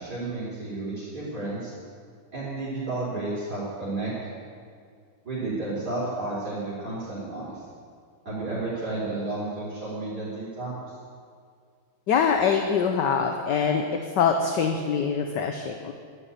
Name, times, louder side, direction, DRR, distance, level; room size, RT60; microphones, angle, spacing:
voice 1, 0.0-1.7 2.3-4.3 5.2-7.5 8.2-10.7, right 2 dB, 45° right, -10 dB, 4.7 m, -32 dB
voice 2, 12.1-13.8 14.2-15.9, left 6 dB, 60° left, 5 dB, 1.4 m, -24 dB
11.0 x 9.7 x 10.0 m, 2.1 s
omnidirectional pair, 2.3 m